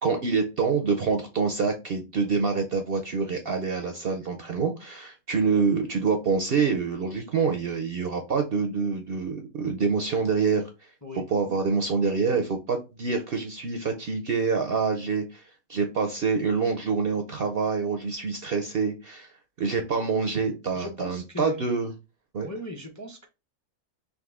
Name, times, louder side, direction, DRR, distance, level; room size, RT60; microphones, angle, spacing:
voice 1, 0.0-10.9 11.3-15.4 15.7-19.3 19.6-21.9 22.3-22.5, right 5 dB, 60° right, 0.6 m, -26 dB
voice 2, 11.0-11.6 20.7-21.6 22.4-23.3, left 1 dB, 20° left, 0.5 m, -38 dB
3.9 x 3.0 x 3.5 m
omnidirectional pair, 1.6 m